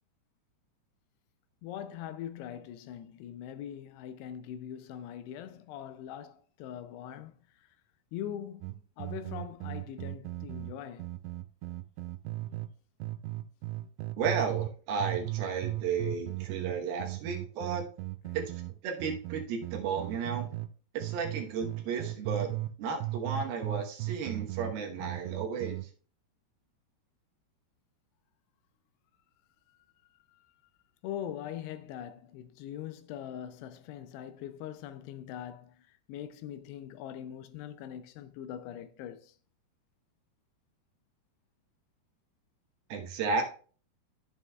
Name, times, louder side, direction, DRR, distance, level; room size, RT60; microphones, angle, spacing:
voice 1, 1.6-7.7 8.1-11.1 29.7-29.8 31.0-39.4, left 10 dB, 85° left, 2.5 m, -42 dB
sound 1, 8.6-12.7 13.0-14.7 15.0-20.7 21.0-22.7 23.0-25.9, right 17 dB, 90° right, 2.7 m, -37 dB
voice 2, 14.2-17.8 18.3-18.4 18.8-20.5 20.9-25.8 42.9-43.4, right 5 dB, 70° right, 2.8 m, -33 dB
11.0 x 7.3 x 2.3 m
omnidirectional pair, 4.9 m